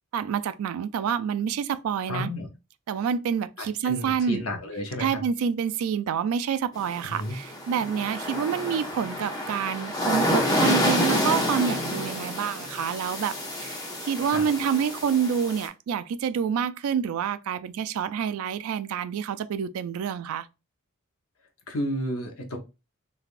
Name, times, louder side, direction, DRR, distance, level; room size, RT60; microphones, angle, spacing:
voice 1, 0.1-2.3 2.9-4.4 5.0-20.5, right 7 dB, 90° right, 0.3 m, -28 dB
voice 2, 2.1-2.5 3.6-5.2 7.1-7.4 14.3-14.4 21.7-22.6, left 1 dB, 80° left, 0.8 m, -32 dB
sound 1, 6.8-15.7, left 1 dB, 20° left, 0.7 m, -28 dB
3.3 x 2.4 x 2.5 m
head